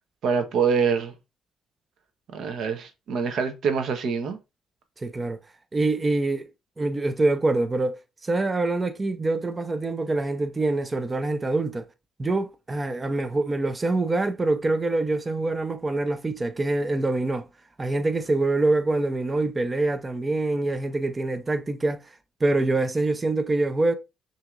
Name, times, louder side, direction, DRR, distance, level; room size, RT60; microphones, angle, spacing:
voice 1, 0.2-1.1 2.3-4.4, right 6 dB, 70° right, 0.9 m, -25 dB
voice 2, 5.0-5.4 5.7-6.5 6.8-11.9 12.2-17.5 17.8-22.0 22.4-23.9, right 2 dB, 25° right, 0.5 m, -25 dB
5.8 x 2.8 x 2.4 m
cardioid pair, 90°, 0 cm